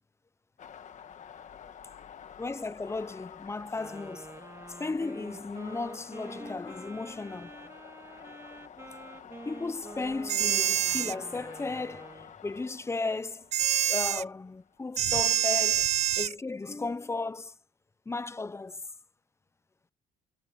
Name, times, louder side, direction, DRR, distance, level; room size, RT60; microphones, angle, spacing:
sound 1, 0.6-15.4, left 8 dB, 45° left, 1.8 m, -49 dB
voice 1, 2.4-4.3 4.8-7.5 9.5-13.5 13.9-15.9 16.2-17.5 18.1-18.8, left 3 dB, 15° left, 0.8 m, -35 dB
Wind instrument woodwind instrument, 3.8-12.4, right 3 dB, 15° right, 1.9 m, -47 dB
sound 2, 10.3-11.2 13.5-14.2 15.0-16.3, right 10 dB, 40° right, 0.4 m, -26 dB
cardioid pair, 110°, 17 cm